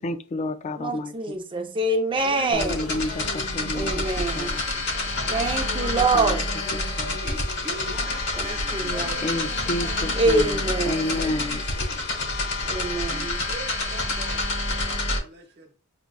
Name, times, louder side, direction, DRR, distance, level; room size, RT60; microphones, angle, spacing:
voice 1, 0.0-1.1 2.5-4.1 4.4-4.6 6.1-6.4 7.0-7.2 9.2-11.6, left 2 dB, 30° left, 0.3 m, -30 dB
voice 2, 0.8-2.8 3.7-4.6 5.3-6.4 8.4-9.2 10.1-11.2 12.6-13.4, right 2 dB, 20° right, 0.5 m, -25 dB
sound 1, 2.2-12.6, left 3 dB, 75° left, 0.7 m, -40 dB
sound 2, 2.5-15.2, left 2 dB, 50° left, 0.9 m, -28 dB
voice 3, 5.2-6.4 7.2-9.4 13.1-15.7, right 3 dB, 50° right, 1.0 m, -42 dB
5.1 x 2.4 x 2.2 m
head